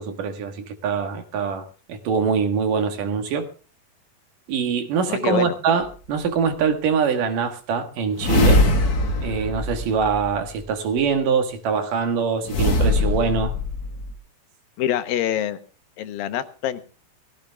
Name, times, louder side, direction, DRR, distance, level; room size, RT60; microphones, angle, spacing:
voice 1, 0.0-3.5 4.5-8.6 9.2-13.5, right 6 dB, 70° right, 3.3 m, -23 dB
voice 2, 5.1-5.6 14.8-15.6 16.0-16.9, left 11 dB, 85° left, 2.9 m, -25 dB
sound 1, 5.8-5.9 8.2-10.6 12.5-14.1, left 2 dB, 40° left, 1.4 m, -22 dB
18.0 x 15.5 x 3.5 m
omnidirectional pair, 4.0 m